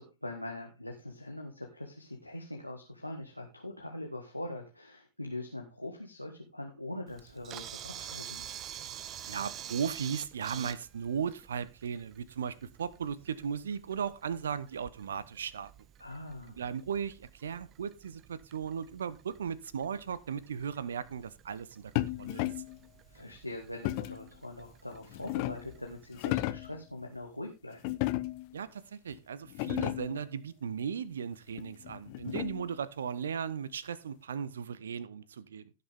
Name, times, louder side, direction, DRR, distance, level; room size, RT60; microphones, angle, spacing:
voice 1, 0.0-8.4 16.0-16.6 22.6-22.7 23.1-27.9, left 1 dB, 90° left, 1.6 m, -42 dB
Camera, 7.1-26.4, right 10 dB, 35° right, 0.8 m, -49 dB
voice 2, 9.3-15.7 16.6-22.5 28.5-35.7, right 7 dB, 65° right, 0.8 m, -37 dB
sound 1, 22.0-22.8 23.8-24.3 24.9-25.8 26.1-26.8 27.8-28.5 29.1-29.2 29.5-30.2 31.6-32.7, left 18 dB, 45° left, 0.7 m, -34 dB
16.0 x 6.7 x 3.6 m
figure-of-eight pair, 90°, 0 cm